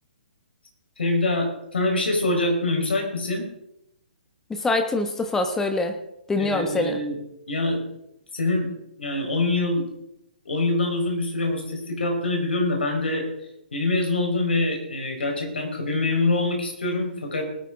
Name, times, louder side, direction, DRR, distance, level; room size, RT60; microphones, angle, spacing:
voice 1, 1.0-3.5 6.4-7.2 7.5-7.8 8.3-8.7 9.0-9.8 10.4-13.3 13.7-17.5, left 2 dB, 80° left, 2 dB, 4.4 m, -25 dB
voice 2, 4.5-6.0 6.3-7.0, left 2 dB, 10° left, 6 dB, 1.2 m, -24 dB
19.5 x 9.0 x 3.7 m, 0.81 s
hypercardioid pair, 140°, 6 cm